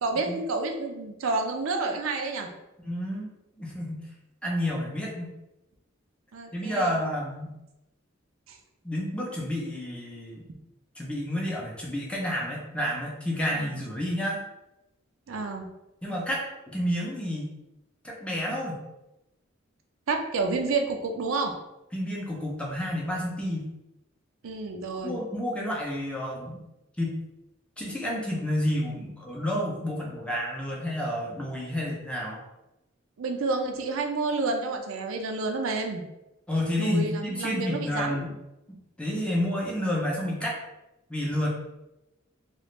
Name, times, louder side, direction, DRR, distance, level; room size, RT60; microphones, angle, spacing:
voice 1, 0.0-2.5 6.3-7.0 8.5-8.6 13.5-13.8 15.3-15.7 20.1-21.5 24.4-25.2 33.2-36.0 36.8-38.2, right 3 dB, 85° right, 4 dB, 0.5 m, -29 dB
voice 2, 2.8-3.3 3.6-4.1 4.4-5.3 6.5-7.6 8.8-10.5 11.0-14.4 16.0-17.5 18.0-18.8 21.9-23.7 25.0-26.6 27.0-27.2 27.8-32.4 36.5-38.3 39.0-40.6 41.1-41.5, equal, 5° left, -3 dB, 0.6 m, -30 dB
3.0 x 2.4 x 3.1 m, 0.94 s
head